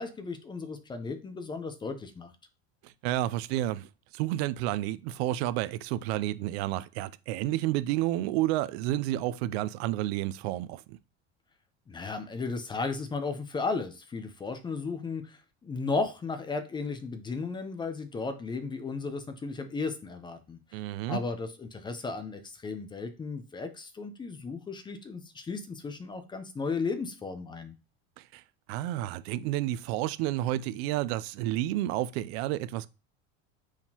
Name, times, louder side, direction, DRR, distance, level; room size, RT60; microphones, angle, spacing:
voice 1, 0.0-2.3 11.9-20.8 21.1-27.7, left 4 dB, 15° left, 0.5 m, -35 dB
voice 2, 2.8-11.0 20.7-21.2 28.2-28.4 28.7-32.9, right 14 dB, 75° right, 0.5 m, -30 dB
4.5 x 3.7 x 2.8 m
supercardioid pair, 130°, 32 cm